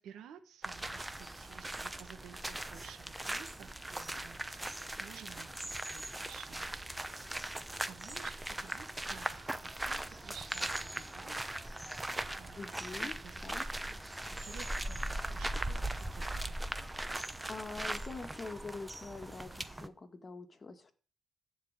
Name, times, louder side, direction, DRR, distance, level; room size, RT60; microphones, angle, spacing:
voice 1, 0.0-7.6 7.8-11.4 11.9-13.5 14.4-16.5, right 9 dB, 75° right, 8 dB, 1.4 m, -54 dB
sound 1, 0.6-19.9, right 1 dB, 10° right, 0.9 m, -39 dB
voice 2, 12.6-13.2 13.4-13.7 17.5-20.9, left 3 dB, 30° left, 7 dB, 1.7 m, -44 dB
14.0 x 4.8 x 8.9 m, 0.41 s
cardioid pair, 90°, 0 cm